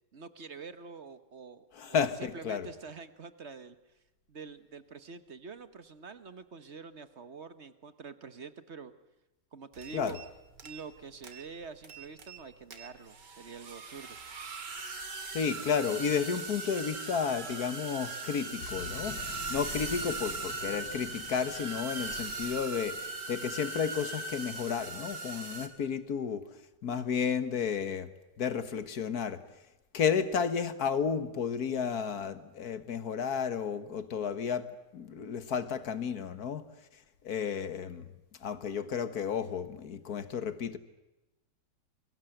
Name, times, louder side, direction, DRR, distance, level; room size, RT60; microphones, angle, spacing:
voice 1, 0.1-3.8 4.3-8.9 9.5-10.2 10.6-14.2, right 4 dB, 45° right, 1.4 m, -46 dB
voice 2, 1.7-2.7 9.9-10.2 15.3-26.5 26.8-28.1 28.4-29.4 29.9-34.7 34.9-36.7 37.2-38.1 38.4-40.8, left 6 dB, 60° left, 1.9 m, -32 dB
sound 1, 9.7-10.3 10.6-11.0 11.2-11.5 11.8-12.4 12.7-25.7, right 3 dB, 80° right, 2.9 m, -40 dB
sound 2, 18.6-23.2 23.4-23.7, left 7 dB, 85° left, 1.8 m, -48 dB
28.5 x 22.5 x 7.9 m
omnidirectional pair, 1.9 m